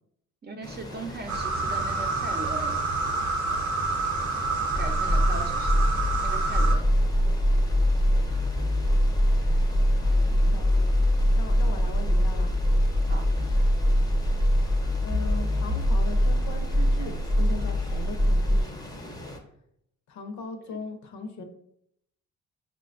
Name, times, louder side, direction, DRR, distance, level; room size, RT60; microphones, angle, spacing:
voice 1, 0.4-2.8 4.7-5.9 6.2-6.8 10.1-10.4 13.1-13.3 20.7-20.8, right 2 dB, 35° right, 4 dB, 0.6 m, -39 dB
sound 1, 0.6-19.4, left 1 dB, 15° left, 0.6 m, -41 dB
sound 2, 1.3-6.8, right 3 dB, 70° right, 0.7 m, -28 dB
sound 3, 4.7-18.6, equal, 10° right, 1.0 m, -23 dB
voice 2, 10.0-11.1 11.3-12.5 15.0-19.2 20.1-21.4, left 3 dB, 65° left, 5 dB, 0.7 m, -39 dB
5.7 x 2.2 x 2.5 m, 0.75 s
cardioid pair, 90°, 30 cm